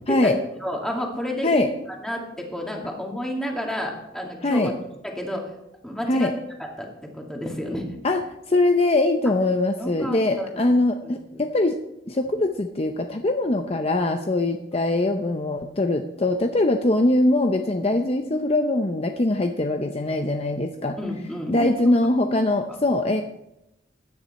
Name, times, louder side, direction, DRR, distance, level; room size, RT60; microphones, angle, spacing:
voice 1, 0.6-1.7 2.0-4.7 5.0-5.5 5.8-6.3 6.8-7.9 9.8-10.7 11.0-11.1 14.7-14.8 21.0-21.7 22.7-22.8, left 1 dB, 5° left, 0 dB, 2.3 m, -30 dB
voice 2, 8.5-11.8 12.1-21.0 21.5-23.2, left 2 dB, 35° left, 5 dB, 0.7 m, -22 dB
16.0 x 10.0 x 4.2 m, 0.87 s
head